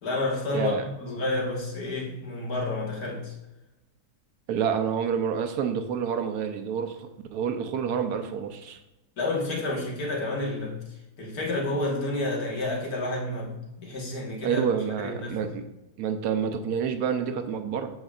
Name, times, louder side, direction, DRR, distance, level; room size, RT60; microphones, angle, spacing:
voice 1, 0.0-3.3 9.2-10.8 11.2-14.6 15.0-15.5, left 2 dB, 75° left, -3 dB, 2.1 m, -30 dB
voice 2, 0.5-0.9 4.5-8.8 14.4-15.6 16.0-17.9, right 7 dB, 90° right, 7 dB, 1.2 m, -28 dB
7.9 x 6.4 x 2.4 m, 0.97 s
omnidirectional pair, 1.6 m